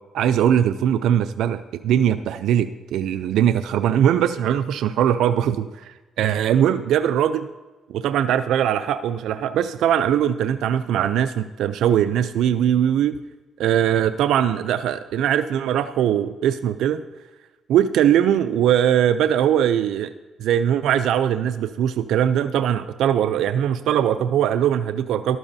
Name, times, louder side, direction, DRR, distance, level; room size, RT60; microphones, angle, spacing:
voice 1, 0.1-7.5 7.9-13.2 13.6-17.0 17.7-20.1 20.4-25.4, right 10 dB, 80° right, 10 dB, 0.4 m, -21 dB
13.5 x 11.5 x 2.7 m, 1.2 s
cardioid pair, 90°, 0 cm